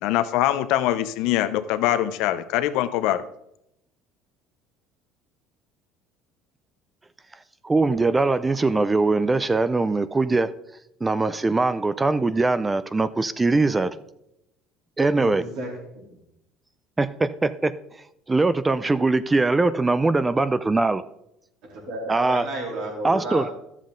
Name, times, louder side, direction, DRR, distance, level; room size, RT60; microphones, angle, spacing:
voice 1, 0.0-3.2, left 13 dB, 75° left, 11 dB, 0.6 m, -23 dB
voice 2, 7.6-10.5 11.0-13.9 15.0-15.4 17.0-17.7 18.3-21.0 22.1-22.5 23.0-23.5, right 3 dB, 15° right, 15 dB, 0.4 m, -21 dB
voice 3, 15.2-16.2 21.7-23.5, right 1 dB, 70° right, -2 dB, 3.6 m, -33 dB
11.5 x 7.4 x 3.8 m, 0.82 s
supercardioid pair, 100°, 0 cm